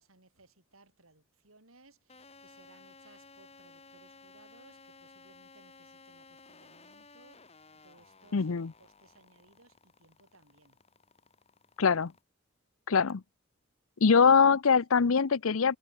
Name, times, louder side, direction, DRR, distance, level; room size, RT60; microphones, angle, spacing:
voice 1, 0.0-10.8 14.1-14.4 14.9-15.0, right 2 dB, 85° right, 8.0 m, -62 dB
sound 1, 2.1-12.2, left 4 dB, 30° left, 2.8 m, -57 dB
voice 2, 8.3-8.7 11.8-12.1 12.9-13.2 14.0-15.8, left 5 dB, 80° left, 0.7 m, -23 dB
head